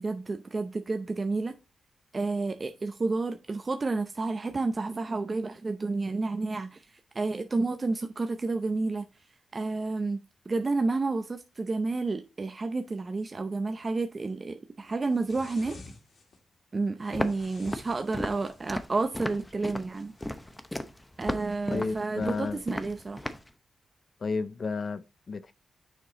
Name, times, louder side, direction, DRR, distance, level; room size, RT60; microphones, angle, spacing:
voice 1, 0.0-1.5 2.1-6.8 7.1-9.0 9.5-10.2 10.5-15.8 16.7-20.1 21.2-23.3, right 3 dB, 35° right, 0.6 m, -30 dB
sound 1, 15.1-16.4 17.1-18.9 19.9-20.6, left 3 dB, 65° left, 1.9 m, -51 dB
Walk footsteps, 17.1-23.5, left 1 dB, 10° left, 0.8 m, -35 dB
voice 2, 21.7-22.6 24.2-25.5, left 4 dB, 50° left, 0.5 m, -32 dB
6.7 x 4.7 x 4.0 m
cardioid pair, 80°, 0 cm